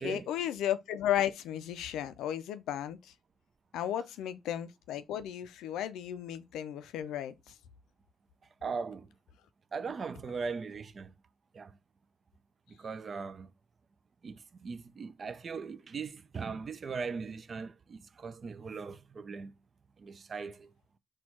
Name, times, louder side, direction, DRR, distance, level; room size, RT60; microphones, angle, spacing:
voice 1, 0.0-3.1 3.7-7.5, left 11 dB, 85° left, 0.4 m, -34 dB
voice 2, 8.6-9.1 9.7-11.1 11.5-11.8 12.7-13.5 14.2-19.5 20.0-20.7, right 5 dB, 40° right, 0.5 m, -39 dB
4.4 x 2.3 x 4.3 m
cardioid pair, 90°, 0 cm